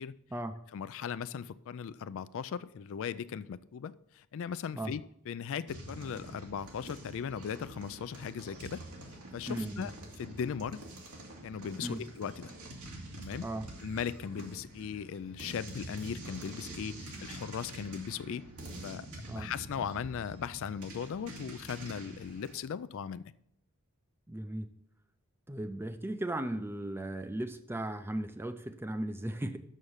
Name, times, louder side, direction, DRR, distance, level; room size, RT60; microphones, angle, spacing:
voice 1, 0.7-5.0 5.3-8.8 9.3-9.9 10.2-10.8 11.4-12.5 13.2-13.5 13.8-18.4 18.8-19.1 19.3-23.3, left 7 dB, 60° left, 15 dB, 0.3 m, -38 dB
sound 1, 5.7-22.6, right 1 dB, 90° right, 2.2 m, -46 dB
voice 2, 9.5-9.9 11.8-12.0 13.4-13.7 19.3-19.5 24.3-24.7 25.5-29.6, right 1 dB, 10° right, 10 dB, 0.5 m, -36 dB
6.5 x 6.4 x 7.1 m, 0.73 s
head